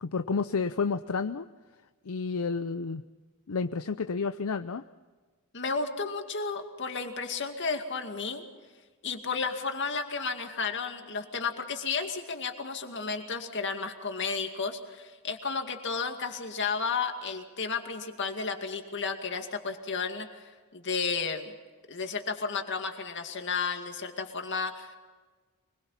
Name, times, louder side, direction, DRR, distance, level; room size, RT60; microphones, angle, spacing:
voice 1, 0.0-1.5 2.0-3.0 3.5-4.8, left 4 dB, 75° left, 10 dB, 0.6 m, -30 dB
voice 2, 5.5-8.4 9.0-21.5 21.9-25.0, left 5 dB, 55° left, 5 dB, 2.3 m, -33 dB
24.5 x 22.0 x 5.8 m, 1.4 s
head